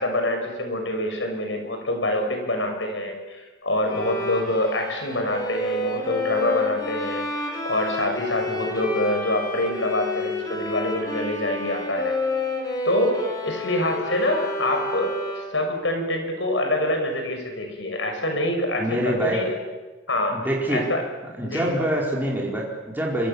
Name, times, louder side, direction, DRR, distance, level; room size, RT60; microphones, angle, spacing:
voice 1, 0.0-12.2 12.8-19.5 20.1-20.4 20.7-21.0 21.4-21.7, left 1 dB, 85° left, 4 dB, 6.7 m, -26 dB
Bowed string instrument, 3.9-15.7, left 2 dB, 20° left, 3.9 m, -30 dB
voice 2, 18.8-19.4 20.3-20.9 21.4-23.3, right 1 dB, 10° right, -3 dB, 4.5 m, -25 dB
26.5 x 25.0 x 7.2 m, 1.3 s
head